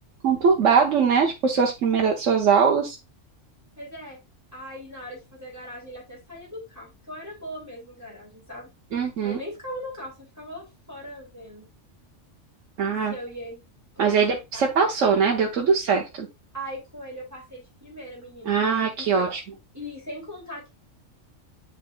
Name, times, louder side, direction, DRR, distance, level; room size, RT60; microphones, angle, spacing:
voice 1, 0.2-3.0 8.9-9.4 12.8-13.1 14.0-16.3 18.5-19.4, right 6 dB, 75° right, 1.3 m, -21 dB
voice 2, 3.8-4.2 4.5-8.7 9.2-11.7 13.1-13.6 13.9-14.6 16.5-19.3 19.7-20.7, equal, 15° right, 2.9 m, -39 dB
9.9 x 4.1 x 2.4 m
omnidirectional pair, 1.3 m